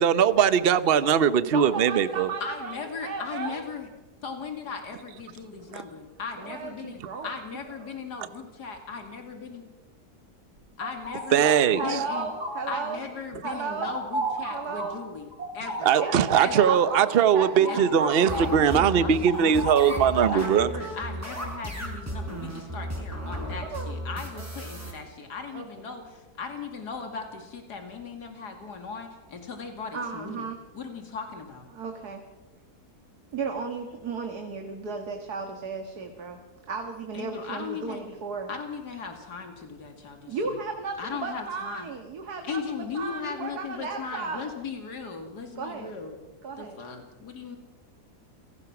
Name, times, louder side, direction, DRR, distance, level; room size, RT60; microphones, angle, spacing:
voice 1, 0.0-2.3 5.7-5.8 11.3-12.0 15.8-20.7, right 8 dB, 45° right, 14 dB, 0.9 m, -21 dB
voice 2, 1.4-3.6 6.4-7.3 7.8-7.9 11.8-13.0 13.4-14.0 14.5-15.0 16.0-18.9 23.6-23.9 24.4-24.5 25.5-25.7 29.9-30.6 31.7-32.2 33.3-36.4 36.7-38.5 40.3-44.5 45.6-45.9 46.4-46.8, right 4 dB, 75° right, 4 dB, 2.2 m, -34 dB
voice 3, 2.4-3.9 4.2-9.6 10.8-11.5 11.8-12.3 12.7-16.0 16.4-16.8 17.6-18.1 18.5-19.6 19.9-30.5 30.7-31.7 37.1-38.0 38.5-40.6 41.0-41.9 42.4-46.2 46.6-47.6, left 5 dB, 85° left, 4 dB, 2.9 m, -38 dB
sound 1, 10.6-13.1 13.4-18.6 18.9-20.7, right 1 dB, 90° right, 3.9 m, -34 dB
sound 2, 18.3-24.9, equal, 10° right, 5.6 m, -35 dB
28.0 x 18.5 x 6.0 m, 1.1 s
omnidirectional pair, 1.7 m